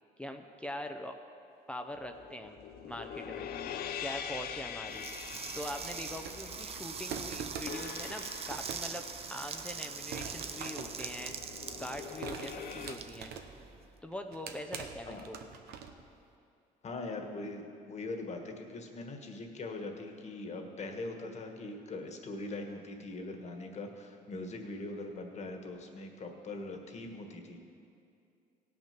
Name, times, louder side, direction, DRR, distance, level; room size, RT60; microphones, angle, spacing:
voice 1, 0.2-1.2 1.7-2.6 2.8-3.5 4.0-5.1 5.5-9.0 9.3-13.3 14.0-15.4, left 1 dB, 5° left, 4 dB, 0.6 m, -42 dB
sound 1, 2.0-12.9, left 8 dB, 65° left, 0.7 m, -44 dB
sound 2, 4.9-13.9, right 6 dB, 35° right, 0.7 m, -43 dB
sound 3, 6.1-6.6 7.1-9.0 9.5-9.7 10.1-11.7 12.2-13.7 14.1-16.1, right 7 dB, 75° right, 0.9 m, -44 dB
voice 2, 16.8-27.6, left 2 dB, 40° left, 4 dB, 1.5 m, -41 dB
17.5 x 6.2 x 5.9 m, 2.5 s
cardioid pair, 110°, 17 cm